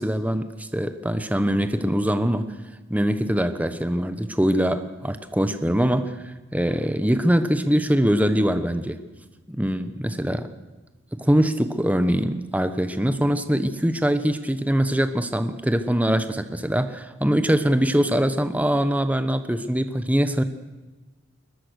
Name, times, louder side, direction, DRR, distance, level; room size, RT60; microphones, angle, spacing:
voice 1, 0.0-2.5 2.9-9.0 9.5-10.5 11.1-20.4, equal, 5° right, 10 dB, 1.0 m, -23 dB
22.0 x 21.0 x 6.5 m, 1.2 s
head